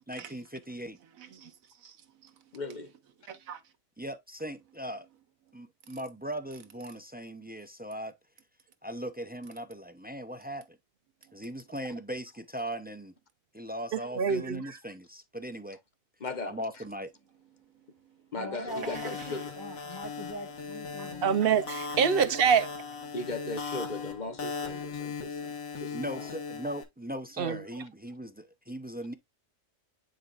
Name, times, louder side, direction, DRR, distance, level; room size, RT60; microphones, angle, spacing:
voice 1, 0.1-1.0 4.0-5.1 5.5-8.1 8.8-10.6 11.3-13.1 13.5-15.8 16.5-17.1 25.9-29.1, equal, 15° right, 0.3 m, -39 dB
voice 2, 1.0-2.3 3.3-3.6 20.9-21.1, right 8 dB, 80° right, 1.4 m, -48 dB
voice 3, 2.5-2.9 16.2-16.8 18.3-19.5 23.1-26.3, left 3 dB, 35° left, 1.0 m, -38 dB
voice 4, 13.9-14.8 21.2-22.7 27.4-27.6, right 7 dB, 55° right, 0.7 m, -25 dB
voice 5, 18.4-21.7, equal, 15° left, 1.6 m, -42 dB
sound 1, 18.7-26.8, left 5 dB, 80° left, 2.1 m, -38 dB
9.5 x 4.7 x 2.5 m
omnidirectional pair, 1.4 m